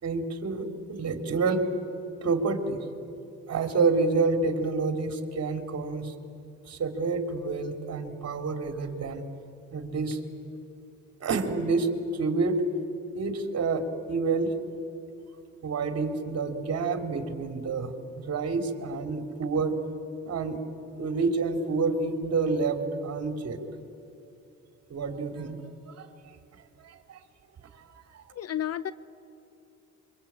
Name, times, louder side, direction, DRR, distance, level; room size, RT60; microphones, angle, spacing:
voice 1, 0.0-1.6 2.2-2.8 3.5-6.1 6.6-9.3 9.7-10.2 11.2-12.6 13.1-14.5 15.6-17.9 18.3-19.8 20.2-20.6 21.0-23.6 24.9-25.6 26.0-26.1 26.8-27.2 27.7-28.2, right 4 dB, 55° right, 6 dB, 3.1 m, -28 dB
voice 2, 28.3-28.9, left 10 dB, 55° left, 16 dB, 0.7 m, -31 dB
26.0 x 24.0 x 8.7 m, 2.7 s
cardioid pair, 90°, 30 cm